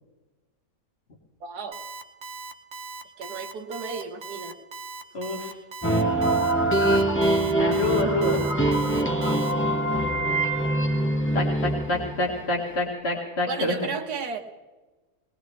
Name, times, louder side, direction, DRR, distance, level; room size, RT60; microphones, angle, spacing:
voice 1, 1.4-1.8 3.2-4.5 13.5-14.4, right 5 dB, 90° right, 3 dB, 1.6 m, -33 dB
Alarm, 1.7-9.5, right 4 dB, 50° right, 1.1 m, -39 dB
voice 2, 5.1-5.5 7.6-8.4 11.3-13.8, left 3 dB, 40° left, -1 dB, 2.4 m, -27 dB
sound 1, 5.8-12.4, right 1 dB, 10° left, 1.4 m, -23 dB
21.0 x 19.5 x 3.3 m, 1.2 s
omnidirectional pair, 1.6 m